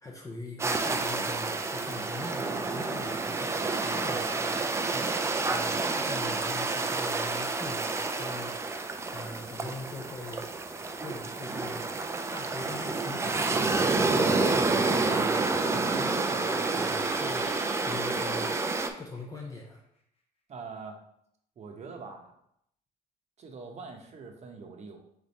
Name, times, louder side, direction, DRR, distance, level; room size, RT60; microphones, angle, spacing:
voice 1, 0.0-4.6 5.5-8.8 9.1-10.5 11.0-11.8 12.3-15.4 15.7-18.5 19.0-19.8, left 2 dB, 20° left, -1 dB, 0.6 m, -42 dB
sound 1, 0.6-18.9, right 3 dB, 15° right, 0.3 m, -29 dB
sound 2, 16.3-19.8, left 2 dB, 35° left, 1.1 m, -49 dB
voice 2, 20.5-21.0 21.6-22.3 23.4-25.0, right 4 dB, 40° right, 3 dB, 0.8 m, -43 dB
3.6 x 3.5 x 4.1 m, 0.74 s
cardioid pair, 110°, 17 cm